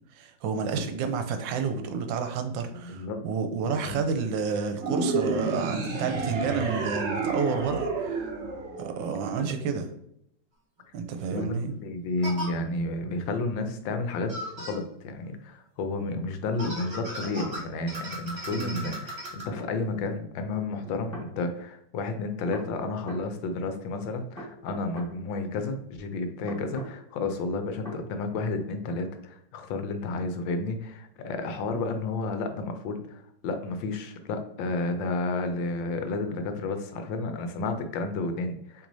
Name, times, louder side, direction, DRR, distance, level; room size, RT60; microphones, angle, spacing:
voice 1, 0.1-8.3 8.8-9.9 10.9-11.7 18.5-18.9, right 5 dB, 80° right, 7 dB, 1.3 m, -30 dB
voice 2, 2.8-3.2 3.6-4.0 9.4-9.6 11.3-14.3 14.6-38.9, left 3 dB, 80° left, 7 dB, 1.3 m, -31 dB
sound 1, 4.8-9.3, right 3 dB, 60° right, 0.7 m, -30 dB
sound 2, 10.8-10.9 12.2-12.5 14.3-14.8 16.6-19.4, equal, 35° right, 1.8 m, -37 dB
sound 3, 19.6-19.7 20.8-21.3 22.5-23.3 24.4-25.1 26.5-26.9 27.8-28.0, right 1 dB, 5° left, 1.6 m, -41 dB
6.0 x 3.3 x 2.6 m, 0.74 s
omnidirectional pair, 2.1 m